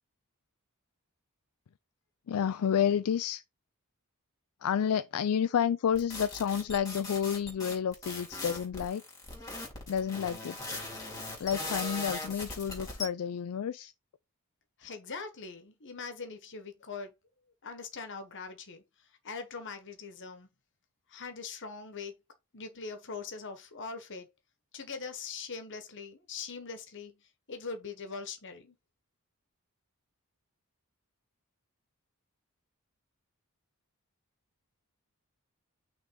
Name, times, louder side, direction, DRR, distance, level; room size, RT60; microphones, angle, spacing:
voice 1, 2.3-3.4 4.6-9.0 9.9-10.8 11.4-13.9, left 8 dB, 75° left, 0.4 m, -30 dB
sound 1, 5.9-13.1, left 2 dB, 15° left, 2.8 m, -39 dB
voice 2, 14.8-17.1 17.6-20.5 21.1-22.2 22.5-24.3 24.7-28.7, left 4 dB, 55° left, 1.3 m, -42 dB
6.0 x 3.5 x 5.3 m
head